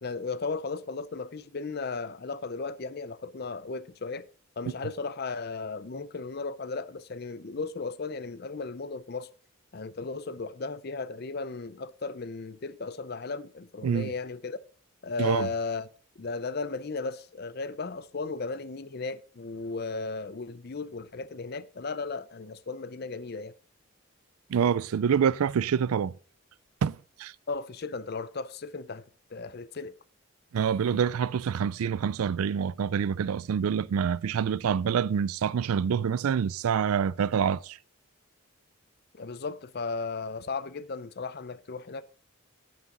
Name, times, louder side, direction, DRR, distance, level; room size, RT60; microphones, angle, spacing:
voice 1, 0.0-4.2 4.6-9.3 9.7-14.6 15.0-15.9 16.2-23.5 27.5-29.0 29.3-29.9 39.1-42.0, left 4 dB, 45° left, 0.5 m, -35 dB
voice 2, 24.5-26.1 26.8-27.3 30.5-37.8, right 7 dB, 85° right, 0.4 m, -26 dB
9.5 x 8.7 x 3.8 m
head